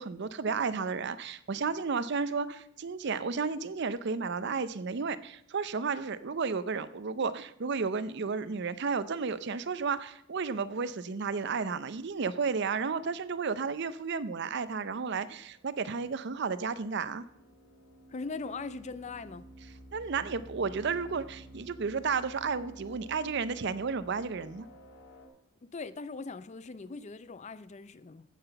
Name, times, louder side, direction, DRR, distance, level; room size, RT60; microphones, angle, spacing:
voice 1, 0.0-17.2 19.9-24.7, right 5 dB, 55° right, 0.5 m, -32 dB
sound 1, 15.3-25.3, right 1 dB, 60° left, 2.5 m, -52 dB
voice 2, 18.1-19.4 25.7-28.2, left 4 dB, 35° left, 0.5 m, -40 dB
15.0 x 5.8 x 6.7 m
head